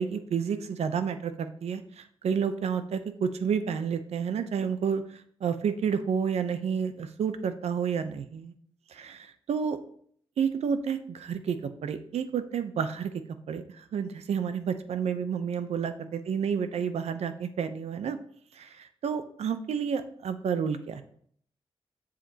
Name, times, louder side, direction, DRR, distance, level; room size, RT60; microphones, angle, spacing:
voice 1, 0.0-8.5 8.9-9.8 10.4-13.1 13.5-18.2 18.5-21.0, right 7 dB, 85° right, 10 dB, 0.6 m, -30 dB
7.4 x 7.3 x 2.8 m, 0.62 s
wide cardioid pair, 115°, 11 cm